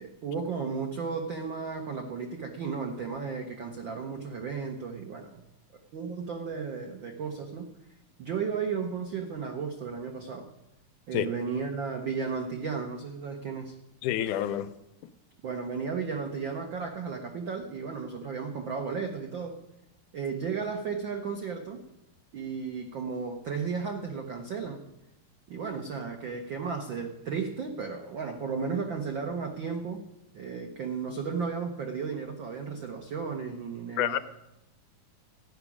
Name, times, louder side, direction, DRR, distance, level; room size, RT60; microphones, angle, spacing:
voice 1, 0.0-5.4 5.9-7.7 8.2-10.5 11.1-13.7 15.4-19.6 20.1-21.8 22.3-24.8 25.5-30.0 30.3-34.2, right 5 dB, 90° right, 4 dB, 1.0 m, -34 dB
voice 2, 14.0-14.7 34.0-34.2, left 12 dB, 80° left, 12 dB, 2.1 m, -28 dB
14.5 x 6.0 x 9.9 m, 0.89 s
omnidirectional pair, 3.7 m